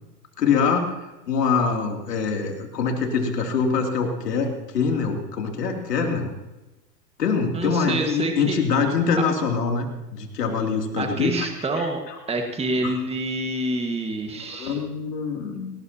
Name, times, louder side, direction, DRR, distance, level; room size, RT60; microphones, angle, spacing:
voice 1, 0.4-0.9 1.3-6.3 7.2-11.5 11.8-12.2 12.8-12.9 14.2-15.7, left 5 dB, 85° left, 2 dB, 3.1 m, -24 dB
voice 2, 7.5-8.6 11.0-12.0 12.3-14.8, right 2 dB, 15° right, 4 dB, 1.7 m, -27 dB
19.0 x 18.5 x 2.9 m, 1.0 s
hypercardioid pair, 105°, 47 cm